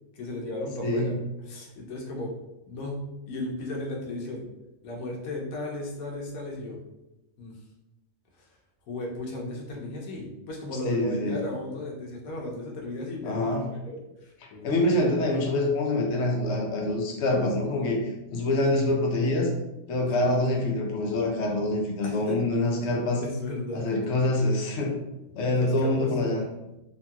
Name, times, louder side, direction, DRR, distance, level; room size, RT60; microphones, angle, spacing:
voice 1, 0.1-1.2 1.5-2.3 2.7-4.4 4.8-6.8 7.4-7.5 8.9-14.9 20.2-20.3 22.0-22.4 22.8-22.9 23.2-23.9 25.6-26.1, left 1 dB, 90° left, -1 dB, 1.1 m, -35 dB
voice 2, 0.8-1.1 10.8-11.4 13.2-13.6 14.6-19.5 19.9-23.2 23.7-24.9 25.4-26.4, left 2 dB, 65° left, 0 dB, 0.9 m, -25 dB
2.9 x 2.8 x 2.2 m, 0.95 s
omnidirectional pair, 1.4 m